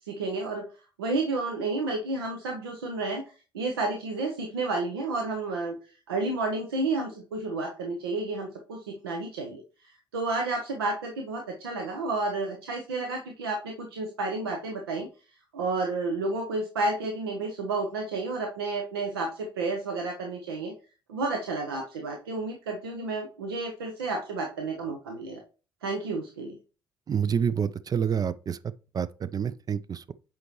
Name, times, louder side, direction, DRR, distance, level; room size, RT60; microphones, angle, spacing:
voice 1, 0.1-0.7 1.0-3.2 3.5-5.8 6.1-15.1 15.5-20.7 21.1-25.4 25.8-26.6, right 3 dB, 75° right, 0.7 m, -31 dB
voice 2, 27.1-28.6 28.9-30.0, right 7 dB, 30° right, 0.4 m, -28 dB
7.6 x 5.2 x 3.0 m
figure-of-eight pair, 50°, 12 cm